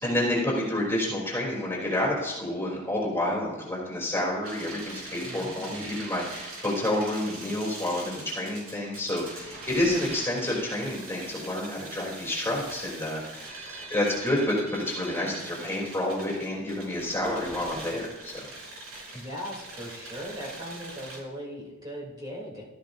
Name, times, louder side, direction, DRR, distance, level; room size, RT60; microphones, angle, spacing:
voice 1, 0.0-18.3, left 1 dB, 10° left, -4 dB, 3.1 m, -29 dB
sound 1, 4.4-21.2, right 2 dB, 70° right, 4.0 m, -42 dB
voice 2, 5.2-5.9 19.1-22.6, equal, 20° right, -5 dB, 3.0 m, -39 dB
17.5 x 13.0 x 2.6 m, 1.0 s
head